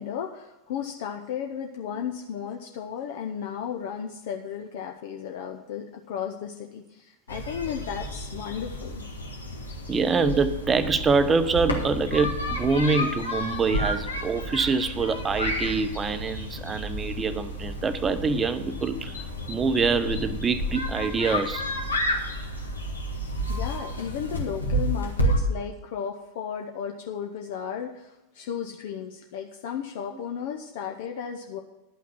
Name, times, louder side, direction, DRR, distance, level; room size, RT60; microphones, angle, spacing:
voice 1, 0.0-9.0 23.5-31.6, left 8 dB, 50° left, 0.8 m, -34 dB
sound 1, 7.3-25.4, equal, 80° left, 1.7 m, -31 dB
voice 2, 9.9-21.7, right 4 dB, 20° right, 0.7 m, -25 dB
11.0 x 5.9 x 7.4 m
figure-of-eight pair, 90°, 0 cm